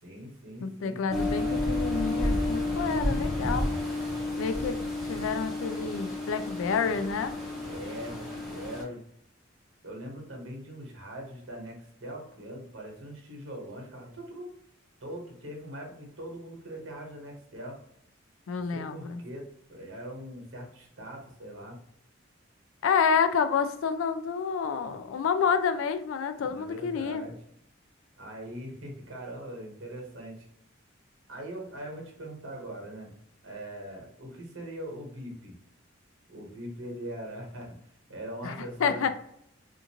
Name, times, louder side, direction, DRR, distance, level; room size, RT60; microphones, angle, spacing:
voice 1, 0.0-1.0 7.6-9.0 9.8-14.5 15.0-17.8 18.7-21.8 26.4-27.4 28.2-30.5 31.3-33.1 33.4-35.6 36.3-37.8 38.1-39.1, right 1 dB, 70° right, 0 dB, 1.1 m, -41 dB
voice 2, 0.6-3.7 4.4-4.8 5.1-7.3 18.5-19.2 22.8-27.2 38.4-39.1, left 6 dB, 75° left, 10 dB, 0.3 m, -29 dB
sound 1, 1.1-8.8, left 2 dB, ahead, 0.8 m, -31 dB
2.5 x 2.5 x 2.8 m, 0.72 s
head